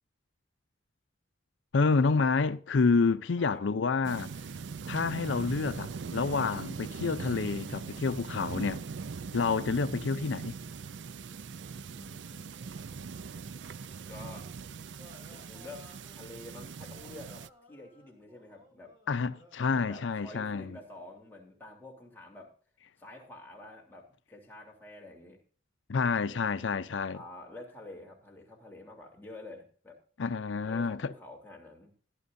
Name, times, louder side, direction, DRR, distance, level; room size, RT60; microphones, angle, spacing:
voice 1, 1.7-4.3 4.9-8.8 9.3-10.5 19.1-20.8 25.9-27.2 30.2-31.1, left 4 dB, 90° left, 0.5 m, -28 dB
sound 1, 4.0-17.5, right 5 dB, 75° right, 0.5 m, -41 dB
sound 2, 9.2-14.4 15.0-21.7, left 1 dB, 25° right, 6.7 m, -62 dB
voice 2, 11.9-12.4 14.1-14.5 15.3-15.9 16.1-18.9 19.7-22.5 23.0-25.4 27.1-30.0 30.6-31.9, left 2 dB, 10° left, 3.3 m, -48 dB
16.5 x 11.5 x 2.6 m
head